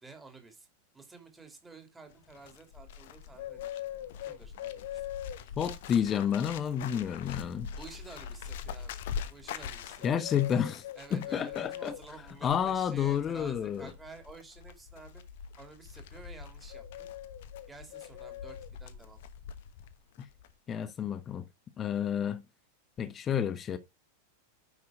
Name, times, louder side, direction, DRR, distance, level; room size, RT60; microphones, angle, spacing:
voice 1, 0.0-0.7 0.9-3.8 4.2-5.1 7.7-9.0 9.3-10.3 11.0-15.2 15.6-17.1 17.7-19.2, right 4 dB, 10° right, 2.8 m, -51 dB
Bird, 2.1-19.9 20.2-20.5, left 9 dB, 55° left, 1.0 m, -42 dB
voice 2, 5.6-7.7 10.0-10.8 11.1-11.9 12.4-13.9 20.2-20.3 20.7-21.5 21.8-22.4 23.0-23.8, left 8 dB, 25° left, 1.0 m, -30 dB
9.7 x 6.2 x 3.6 m
figure-of-eight pair, 90°, 0 cm